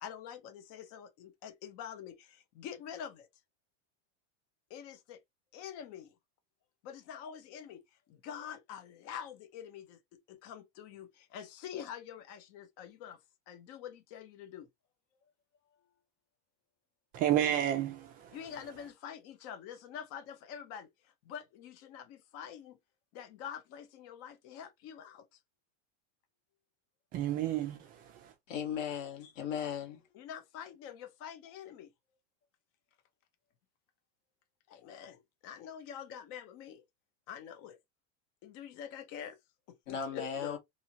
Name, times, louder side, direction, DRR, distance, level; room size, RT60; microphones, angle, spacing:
voice 1, 0.0-3.3 4.7-5.2 5.5-6.1 6.8-7.8 8.1-10.0 10.3-13.2 13.5-14.7 18.3-20.9 21.2-22.8 23.1-25.2 30.1-31.9 34.7-36.8 37.3-37.8 38.4-39.4 39.9-40.6, left 8 dB, 40° left, 0.7 m, -46 dB
voice 2, 17.1-18.4 27.1-28.3, right 11 dB, 25° right, 0.4 m, -31 dB
voice 3, 28.5-30.0 39.9-40.6, left 8 dB, 90° left, 1.6 m, -37 dB
2.8 x 2.8 x 2.7 m
supercardioid pair, 155°, 36 cm